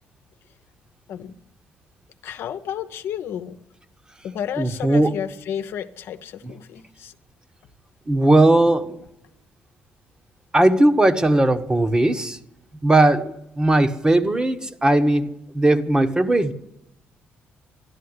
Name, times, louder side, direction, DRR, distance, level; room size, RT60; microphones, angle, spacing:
voice 1, 2.2-3.6 4.2-7.1, left 9 dB, 70° left, 8 dB, 0.9 m, -32 dB
voice 2, 4.6-5.1 8.1-9.0 10.5-12.4 12.8-16.5, right 1 dB, 20° right, 8 dB, 1.3 m, -18 dB
12.5 x 11.5 x 9.7 m, 0.85 s
cardioid pair, 80°, 4 cm